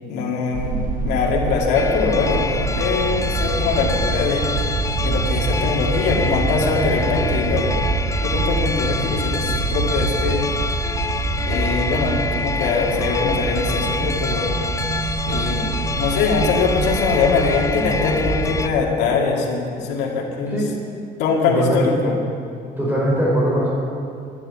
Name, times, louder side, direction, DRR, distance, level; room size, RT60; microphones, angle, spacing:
voice 1, 0.0-4.5 5.0-7.7 8.2-10.5 11.4-14.5 15.2-20.6 21.2-22.2, left 4 dB, 85° left, -1 dB, 2.4 m, -22 dB
sound 1, 0.5-18.7, right 4 dB, 55° right, 1.2 m, -25 dB
sound 2, 1.7-18.7, left 4 dB, 20° left, 0.4 m, -27 dB
voice 2, 21.5-21.8 22.8-23.7, right 1 dB, 10° right, -5 dB, 4.6 m, -20 dB
11.0 x 10.5 x 9.0 m, 2.4 s
cardioid pair, 110°, 17 cm